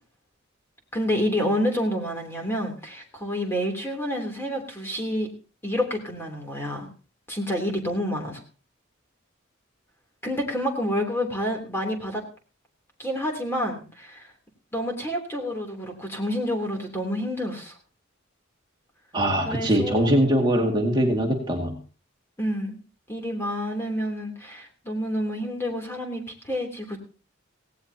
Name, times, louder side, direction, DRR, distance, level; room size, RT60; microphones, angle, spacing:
voice 1, 0.9-5.3 5.6-6.9 7.3-8.4 10.2-12.2 13.0-14.2 14.7-17.7 19.4-20.2 20.6-20.7 22.4-22.8 23.1-27.0, equal, 10° left, 2 dB, 3.2 m, -28 dB
voice 2, 19.1-21.8, equal, 20° right, 0 dB, 2.2 m, -22 dB
17.5 x 17.0 x 2.9 m, 0.36 s
head